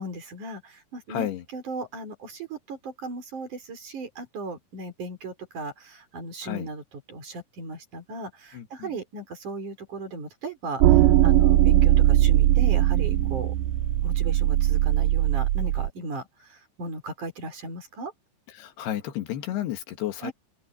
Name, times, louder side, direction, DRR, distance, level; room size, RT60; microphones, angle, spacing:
voice 1, 0.0-6.8 7.1-13.5 14.0-16.3 16.8-18.1 20.2-20.3, right 2 dB, 50° right, 5.8 m, -36 dB
voice 2, 1.1-1.5 6.4-6.7 8.5-8.9 18.5-20.3, left 12 dB, 80° left, 3.6 m, -32 dB
sound 1, 10.8-15.9, right 14 dB, 85° right, 1.9 m, -20 dB
open air
omnidirectional pair, 4.7 m